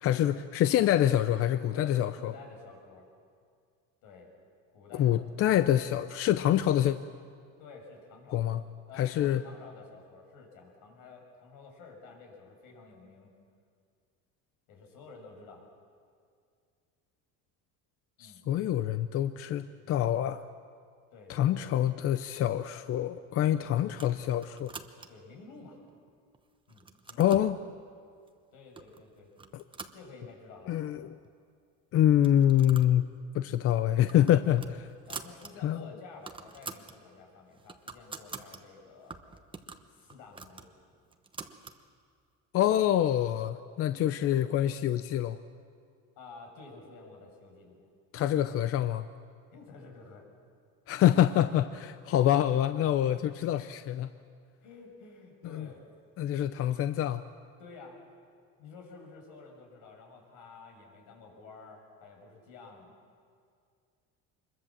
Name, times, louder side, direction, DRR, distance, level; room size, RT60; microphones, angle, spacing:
voice 1, 0.0-2.3 4.9-7.0 8.3-8.6 9.0-9.4 18.2-20.4 21.3-24.7 27.2-27.6 29.5-29.6 30.7-31.1 31.9-33.1 33.3-34.9 35.6-35.8 42.5-45.4 48.1-49.1 50.9-54.1 55.4-55.7 56.2-57.2, left 11 dB, 45° left, 11 dB, 0.6 m, -26 dB
voice 2, 1.7-3.1 4.0-4.3 4.7-5.3 7.6-8.6 8.9-13.3 14.7-15.6 18.2-18.4 21.1-21.7 23.5-23.7 25.1-25.8 26.7-27.3 28.5-29.3 29.9-30.9 35.1-39.2 39.9-40.7 46.2-47.9 49.5-50.3 54.6-55.8 57.6-58.0 58.6-62.9, left 4 dB, 75° left, 1 dB, 6.5 m, -51 dB
sound 1, 23.9-25.3 25.9-26.4 26.7-27.5 28.3-28.4 28.8-29.0 29.4-30.6 30.9-31.0 31.2-31.3 32.1-33.0 33.3-33.5 33.9-35.5 35.8-35.9 36.1-37.0 37.4-38.6 39.1-41.8, right 4 dB, 15° right, 1.0 m, -45 dB
25.0 x 21.5 x 7.3 m, 2.2 s
cardioid pair, 145°, 33 cm